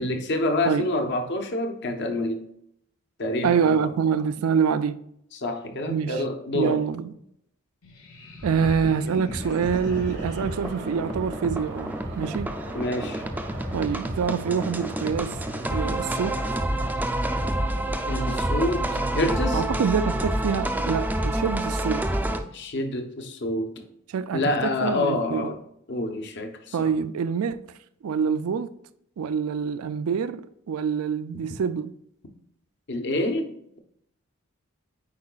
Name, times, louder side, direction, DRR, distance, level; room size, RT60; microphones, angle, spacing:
voice 1, 0.0-2.5 3.2-3.9 5.3-6.8 12.7-13.2 18.1-19.6 22.5-23.9 24.3-25.6 25.9-26.9 32.9-33.5, left 1 dB, 55° left, 0.9 m, -27 dB
voice 2, 3.4-5.0 5.9-6.1 6.5-7.1 8.4-12.5 13.7-15.4 15.7-16.4 19.5-22.1 24.1-25.5 26.7-27.6 28.0-28.7 29.2-31.9, right 6 dB, 85° right, 0.4 m, -26 dB
sound 1, 7.8-21.3, equal, 90° left, 1.5 m, -42 dB
sound 2, 8.4-22.4, right 1 dB, 10° right, 0.5 m, -29 dB
sound 3, 9.4-16.5, right 2 dB, 55° right, 0.9 m, -42 dB
8.5 x 4.8 x 2.4 m
head